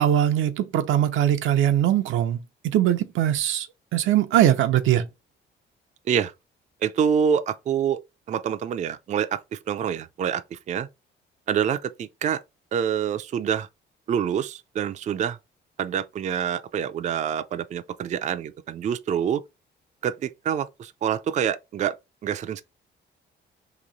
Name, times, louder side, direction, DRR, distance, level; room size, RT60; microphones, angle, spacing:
voice 1, 0.0-2.4 2.6-3.7 3.9-5.0, right 11 dB, 85° right, 0.6 m, -21 dB
voice 2, 6.8-8.0 8.3-10.9 11.5-12.4 12.7-13.7 14.1-15.4 15.8-19.4 20.0-22.0 22.2-22.6, right 8 dB, 35° right, 0.4 m, -26 dB
3.0 x 2.7 x 3.9 m
cardioid pair, 125°, 20 cm